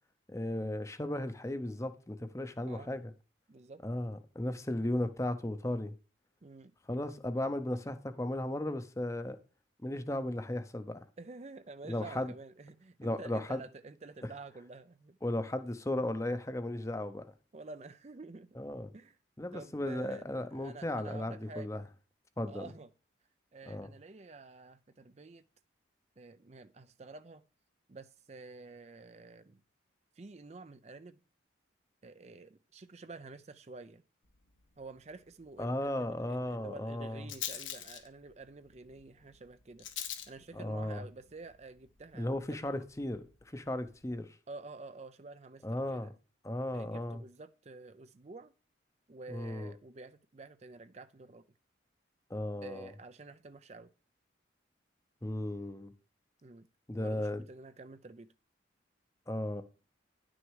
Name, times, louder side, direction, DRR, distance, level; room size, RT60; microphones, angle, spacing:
voice 1, 0.3-3.1 3.8-5.9 6.9-9.4 9.8-11.0 11.8-12.3 13.0-13.6 15.2-17.2 18.6-18.9 19.4-21.8 22.4-22.7 23.7-23.9 35.6-37.3 40.5-41.0 42.1-44.4 45.6-46.1 46.4-47.2 49.3-49.7 52.3-52.9 55.2-55.9 56.9-57.4 59.3-59.6, left 1 dB, 15° left, 0.7 m, -35 dB
voice 2, 3.5-3.8 6.4-6.7 11.2-15.2 17.5-18.6 18.9-19.2 19.5-21.9 22.4-22.9 23.5-25.4 26.2-27.4 27.9-29.6 30.2-31.2 32.0-34.0 34.8-39.9 40.3-42.3 42.7-42.8 44.5-46.1 46.7-48.5 49.1-51.4 52.6-53.9 56.4-56.7 56.9-58.3, right 3 dB, 35° right, 0.5 m, -49 dB
Rattle, 34.2-44.2, left 10 dB, 80° left, 1.4 m, -48 dB
10.5 x 6.3 x 4.8 m
head